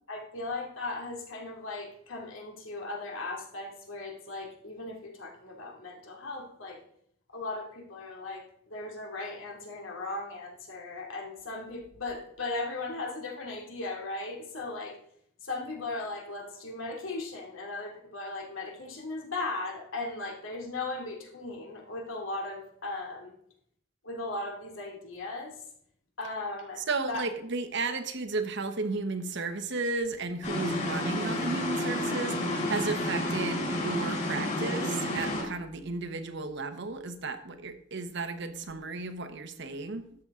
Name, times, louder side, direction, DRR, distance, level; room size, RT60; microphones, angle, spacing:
voice 1, 0.1-6.8 7.3-15.0 15.4-23.3 24.0-25.6 26.2-27.2, left 2 dB, 90° left, 0 dB, 2.6 m, -37 dB
voice 2, 26.9-40.1, right 3 dB, 60° right, 9 dB, 1.0 m, -34 dB
sound 1, 30.4-35.4, left 1 dB, 40° left, 3.8 m, -30 dB
12.5 x 7.7 x 3.7 m, 0.67 s
head